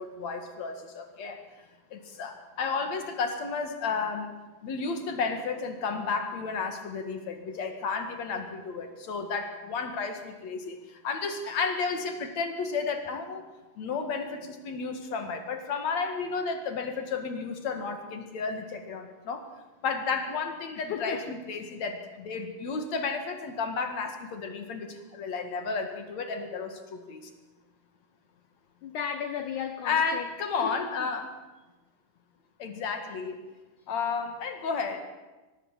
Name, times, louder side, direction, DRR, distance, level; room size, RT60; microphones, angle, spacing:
voice 1, 0.0-1.4 1.9-4.4 4.6-13.5 13.8-19.4 19.8-27.3 29.8-31.3 32.6-33.4 33.9-35.0, left 5 dB, 50° left, 6 dB, 2.6 m, -32 dB
voice 2, 20.8-21.3 28.8-30.3 30.6-31.1, left 8 dB, 80° left, 9 dB, 1.7 m, -35 dB
24.0 x 19.0 x 7.5 m, 1.2 s
omnidirectional pair, 4.7 m